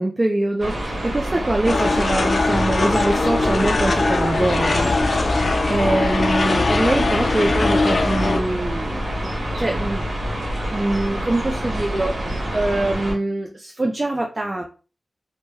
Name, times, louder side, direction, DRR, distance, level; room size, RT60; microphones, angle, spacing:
voice 1, 0.0-4.9 5.7-9.3 9.6-10.1 10.7-14.6, right 2 dB, 30° right, 1 dB, 0.4 m, -23 dB
sound 1, 0.6-13.1, equal, 65° right, 0.8 m, -27 dB
sound 2, 1.6-8.4, left 3 dB, 65° left, 0.3 m, -21 dB
2.2 x 2.1 x 3.3 m, 0.35 s
wide cardioid pair, 85°, 0 cm